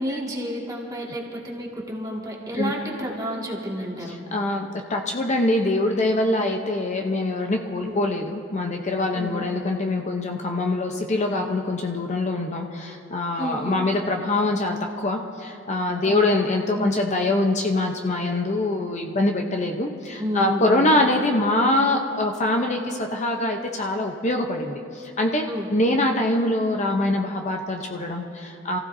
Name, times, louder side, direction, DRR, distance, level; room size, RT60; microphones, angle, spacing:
voice 1, 0.0-4.2 7.8-8.0 9.1-9.4 13.4-13.8 16.0-16.5 16.7-16.9 20.2-20.9 25.4-25.7, equal, 20° right, -3 dB, 2.0 m, -30 dB
voice 2, 4.0-25.4 25.7-28.8, left 2 dB, 35° left, 3 dB, 0.7 m, -24 dB
28.0 x 15.0 x 2.7 m, 2.7 s
head